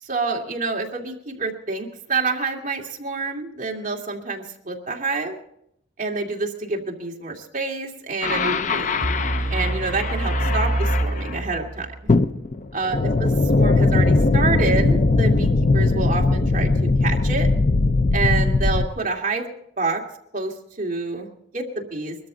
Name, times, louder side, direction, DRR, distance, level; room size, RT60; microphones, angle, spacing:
voice 1, 0.0-5.4 6.0-8.9 9.5-11.9 12.7-17.5 18.1-19.5 19.8-20.0 20.3-22.2, right 3 dB, 40° right, -1 dB, 2.3 m, -27 dB
sound 1, 8.2-11.4 12.1-18.9, left 3 dB, 40° left, 0.5 m, -20 dB
sound 2, 9.0-12.1, right 1 dB, 60° right, 3.5 m, -25 dB
22.5 x 13.5 x 3.9 m, 0.72 s
head